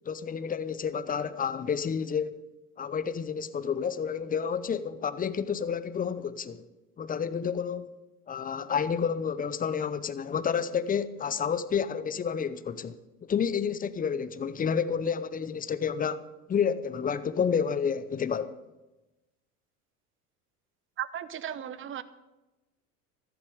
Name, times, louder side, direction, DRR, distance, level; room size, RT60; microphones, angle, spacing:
voice 1, 0.1-2.4 2.8-6.6 7.0-7.9 8.3-13.0 13.3-18.5, left 7 dB, 20° left, 0.7 m, -30 dB
voice 2, 21.0-22.0, right 10 dB, 25° right, 0.8 m, -36 dB
14.0 x 12.0 x 5.1 m
hypercardioid pair, 80°, 46 cm